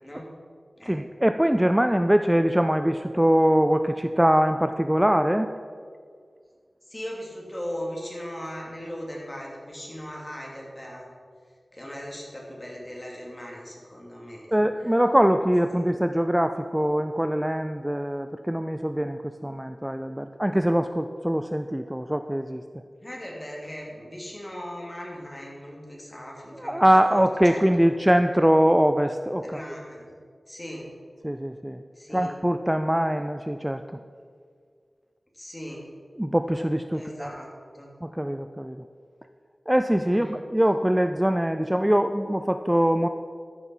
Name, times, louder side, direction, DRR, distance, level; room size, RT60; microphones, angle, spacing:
voice 1, 0.9-5.5 14.5-22.6 26.6-29.6 31.2-31.8 32.1-33.8 36.2-37.3 38.0-38.8 39.7-43.1, equal, 10° right, 8 dB, 0.4 m, -23 dB
voice 2, 6.9-11.1 11.7-14.5 14.8-14.9 23.0-27.2 27.5-27.9 29.4-30.2 30.5-30.9 31.9-32.3 35.3-35.9 36.9-37.5 37.7-37.9 40.1-40.4, equal, 25° left, -2 dB, 3.0 m, -38 dB
14.0 x 6.1 x 5.5 m, 2.1 s
wide cardioid pair, 45°, 0 cm